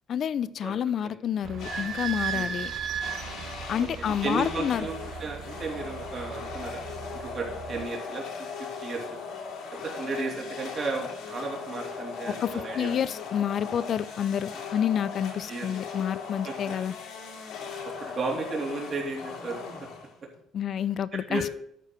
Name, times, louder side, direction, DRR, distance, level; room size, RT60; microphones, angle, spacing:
voice 1, 0.1-2.7 3.7-4.9 12.3-16.9 20.5-21.4, left 9 dB, 50° left, 0.5 m, -29 dB
Idling / Squeak, 1.4-7.8, right 7 dB, 60° right, 1.1 m, -36 dB
sound 1, 1.6-2.3 3.0-20.4, left 5 dB, 80° left, 2.7 m, -39 dB
voice 2, 3.8-4.9 5.2-6.8 7.1-9.2 9.7-12.9 15.5-15.7 16.4-16.5 17.8-19.6 21.1-21.5, right 3 dB, 40° right, 2.9 m, -34 dB
12.0 x 4.7 x 5.9 m
cardioid pair, 120°, 0 cm